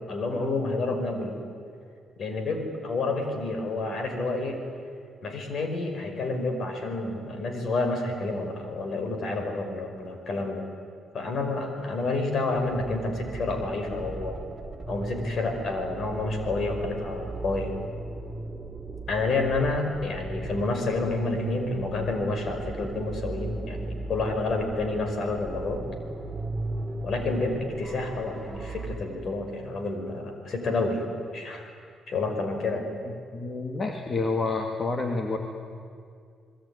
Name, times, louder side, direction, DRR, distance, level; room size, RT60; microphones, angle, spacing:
voice 1, 0.1-1.4 2.2-4.6 5.2-10.7 11.1-14.4 14.9-17.7 19.1-25.8 27.0-31.0 31.3-31.7 32.1-32.9, left 3 dB, 55° left, 6 dB, 5.3 m, -29 dB
sound 1, 12.6-29.0, right 2 dB, 10° right, 3.0 m, -36 dB
voice 2, 33.3-35.4, left 3 dB, 40° left, 4 dB, 2.2 m, -28 dB
27.0 x 21.0 x 9.8 m, 2.3 s
cardioid pair, 90°, 0 cm